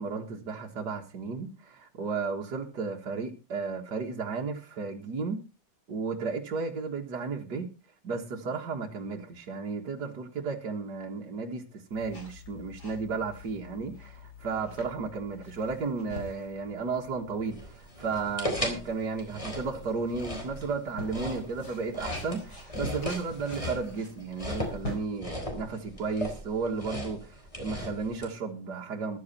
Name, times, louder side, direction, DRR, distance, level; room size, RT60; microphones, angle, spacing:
voice 1, 0.0-5.5 5.9-7.7 8.0-29.2, right 4 dB, 65° right, 2.3 m, -34 dB
sound 1, 11.9-25.0, left 1 dB, 60° left, 5.0 m, -45 dB
sound 2, 17.5-28.3, left 1 dB, 15° left, 3.5 m, -38 dB
14.5 x 11.5 x 4.3 m
omnidirectional pair, 2.0 m